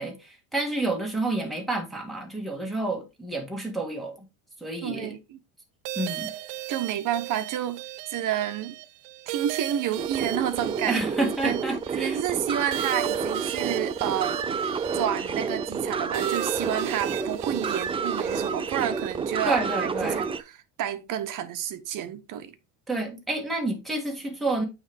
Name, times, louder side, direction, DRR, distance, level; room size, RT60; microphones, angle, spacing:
voice 1, 0.0-4.2 4.6-5.1 6.0-6.3 10.9-12.2 19.5-20.3 22.9-24.6, right 2 dB, ahead, 1.8 m, -29 dB
voice 2, 4.8-5.4 6.7-8.8 9.3-11.0 11.4-11.6 11.9-14.7 14.9-20.3 20.8-22.5, right 10 dB, 50° right, 1.1 m, -30 dB
sound 1, 5.8-20.3, right 15 dB, 75° right, 0.7 m, -37 dB
sound 2, 10.0-20.4, right 5 dB, 15° right, 0.4 m, -29 dB
8.8 x 3.5 x 3.4 m
cardioid pair, 110°, 39 cm